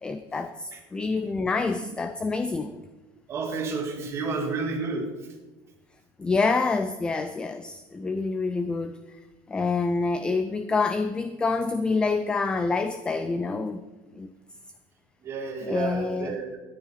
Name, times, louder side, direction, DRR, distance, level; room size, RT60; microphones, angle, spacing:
voice 1, 0.0-2.8 6.2-9.2 9.5-13.8 14.1-14.3 15.6-16.4, left 4 dB, 10° left, 10 dB, 0.4 m, -27 dB
voice 2, 3.3-5.1 15.2-16.6, right 4 dB, 25° right, 2 dB, 2.0 m, -31 dB
13.0 x 9.7 x 5.6 m, 1.2 s
cardioid pair, 175°, 10 cm